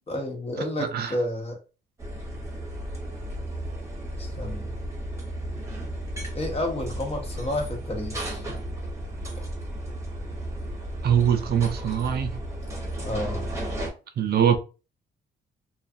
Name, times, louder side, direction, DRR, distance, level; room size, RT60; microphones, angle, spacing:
voice 1, 0.1-1.6 4.2-4.7 6.3-8.4 13.0-13.5, left 1 dB, 30° left, 1.0 m, -30 dB
sound 1, 2.0-13.9, right 1 dB, 15° right, 1.0 m, -34 dB
voice 2, 11.0-12.4 14.2-14.6, right 8 dB, 55° right, 0.4 m, -22 dB
2.4 x 2.3 x 2.5 m
cardioid pair, 95°, 19 cm